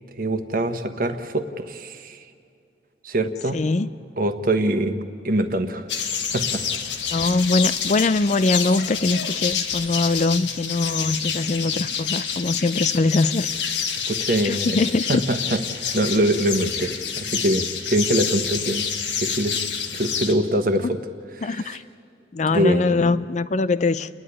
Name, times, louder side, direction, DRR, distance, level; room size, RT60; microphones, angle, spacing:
voice 1, 0.2-2.2 3.0-3.6 4.2-5.9 6.3-6.6 14.1-14.8 15.1-18.9 19.2-19.6 19.9-21.0 21.4-21.8 22.5-23.1, right 1 dB, 50° right, 8 dB, 1.2 m, -24 dB
voice 2, 3.5-3.9 7.1-13.5 14.4-15.2 21.4-21.8 22.3-24.1, left 3 dB, 40° left, 14 dB, 0.4 m, -22 dB
sound 1, 5.9-20.3, left 7 dB, 85° left, 1.6 m, -28 dB
29.5 x 10.5 x 9.8 m, 2.4 s
head